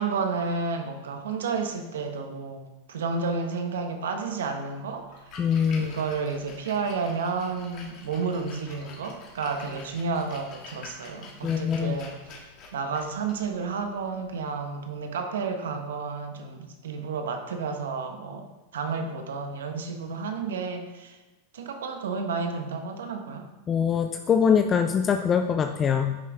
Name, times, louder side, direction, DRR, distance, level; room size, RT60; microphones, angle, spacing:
voice 1, 0.0-2.6 2.9-5.1 5.8-18.5 18.7-21.2 21.5-23.5, right 4 dB, 85° right, 6 dB, 1.1 m, -31 dB
Splash splatter, 5.0-14.9, left 3 dB, 45° left, 2.2 m, -47 dB
voice 2, 5.4-5.9 11.4-12.0 23.7-26.2, left 7 dB, 30° left, 7 dB, 0.5 m, -23 dB
10.5 x 6.1 x 3.5 m, 1.1 s
hypercardioid pair, 115°, 0 cm